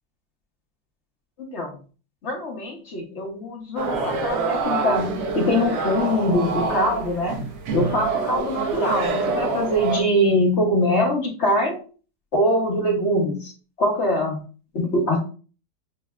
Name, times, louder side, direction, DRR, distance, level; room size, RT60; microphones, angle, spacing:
voice 1, 1.4-1.7 2.2-7.4 7.7-11.8 12.3-13.5 13.8-14.4 14.7-15.2, left 1 dB, 45° left, 0 dB, 1.0 m, -23 dB
sound 1, 3.8-10.0, right 4 dB, 75° right, 1.5 m, -26 dB
6.4 x 2.6 x 2.3 m, 0.37 s
omnidirectional pair, 1.9 m